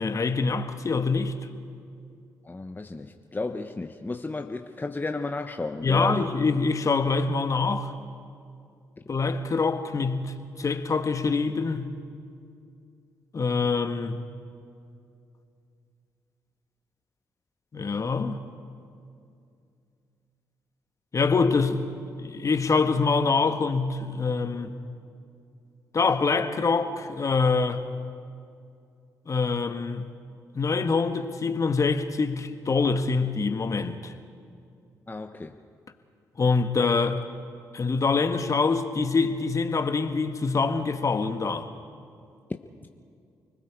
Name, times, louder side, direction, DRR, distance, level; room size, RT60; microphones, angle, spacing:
voice 1, 0.0-1.4 5.8-7.9 9.1-11.9 13.3-14.2 17.7-18.4 21.1-21.8 22.2-24.7 25.9-27.8 29.3-30.1 30.5-34.1 36.4-37.2 37.7-41.7, left 4 dB, 40° left, 1.6 m, -25 dB
voice 2, 2.5-6.3 35.1-35.5, left 3 dB, 25° left, 1.2 m, -33 dB
29.5 x 20.5 x 4.7 m
hypercardioid pair, 45°, 8 cm